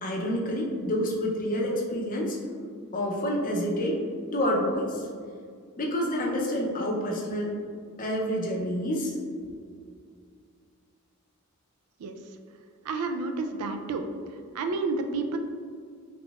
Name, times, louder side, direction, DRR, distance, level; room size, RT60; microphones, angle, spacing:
voice 1, 0.0-2.4 2.9-4.0 4.3-5.1 5.8-7.5 8.0-9.1 9.5-9.6, equal, 35° left, -1 dB, 0.5 m, -28 dB
voice 2, 12.8-14.0 14.3-15.4, right 3 dB, 80° right, 6 dB, 0.3 m, -30 dB
4.0 x 2.9 x 2.3 m, 2.1 s
head